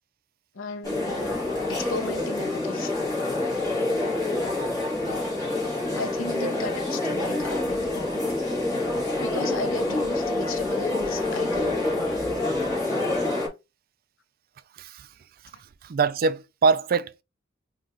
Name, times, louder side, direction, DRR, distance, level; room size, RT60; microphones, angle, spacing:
voice 1, 0.5-1.3 1.7-3.0 5.9-8.3 9.2-12.0, left 3 dB, 85° left, 0.7 m, -36 dB
sound 1, 0.8-13.5, left 2 dB, 15° left, 2.2 m, -27 dB
voice 2, 14.8-15.1 15.8-17.2, right 5 dB, 50° right, 0.4 m, -23 dB
3.9 x 2.9 x 3.6 m
head